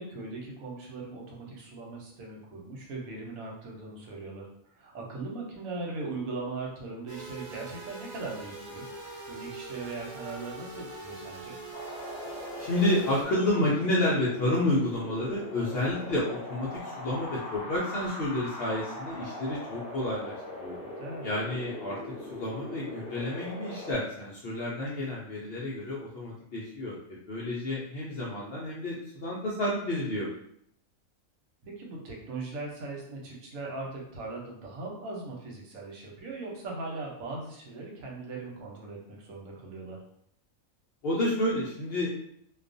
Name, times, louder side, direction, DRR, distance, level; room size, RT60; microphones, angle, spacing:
voice 1, 0.0-4.5 4.8-8.8 9.3-11.6 21.0-21.4 31.6-40.0, right 3 dB, 80° right, -1 dB, 1.1 m, -39 dB
sound 1, 7.1-13.2, right 2 dB, 55° right, 0.5 m, -43 dB
Wind, 11.7-23.9, left 2 dB, 15° left, 1.1 m, -41 dB
voice 2, 12.6-20.3 20.6-20.8 21.2-22.0 22.3-27.0 27.3-30.3 41.0-42.3, left 1 dB, 65° left, -5 dB, 0.6 m, -30 dB
2.3 x 2.3 x 2.5 m, 0.70 s
omnidirectional pair, 1.5 m